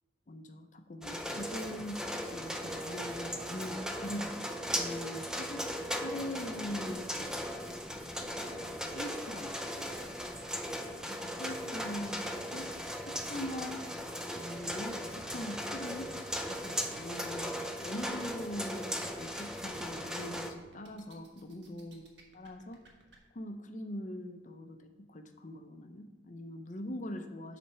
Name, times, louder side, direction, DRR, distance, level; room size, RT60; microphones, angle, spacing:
voice 1, 0.3-7.3 8.4-9.9 11.0-12.7 13.0-13.8 14.4-16.1 16.5-17.5 17.8-22.0 22.3-22.8 23.3-24.8 25.1-27.6, left 1 dB, 40° left, 7 dB, 0.6 m, -42 dB
sound 1, 1.0-20.5, equal, 5° right, 0.4 m, -38 dB
sound 2, 7.0-23.2, right 2 dB, 70° right, 1.3 m, -60 dB
8.6 x 4.2 x 5.5 m, 1.2 s
head